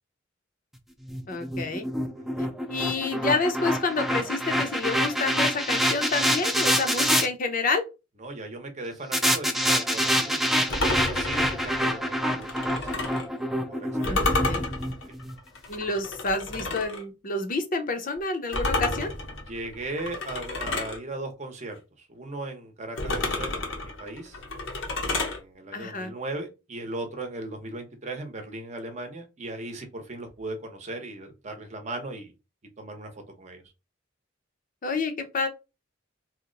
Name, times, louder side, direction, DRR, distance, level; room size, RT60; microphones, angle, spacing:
sound 1, 1.1-7.3 9.1-15.3, equal, ahead, 0.3 m, -26 dB
voice 1, 1.3-1.9 2.7-7.8 14.0-14.6 15.7-19.1 25.7-26.1 34.8-35.5, left 3 dB, 45° left, 0.6 m, -29 dB
voice 2, 8.2-10.4 10.9-12.9 13.7-14.3 15.0-15.2 19.4-24.4 25.0-32.3 32.8-33.6, right 2 dB, 35° right, 0.8 m, -38 dB
sound 2, 10.7-13.3 14.0-17.0 18.5-21.0 23.0-25.4, left 2 dB, 90° left, 0.9 m, -30 dB
2.8 x 2.1 x 3.8 m
head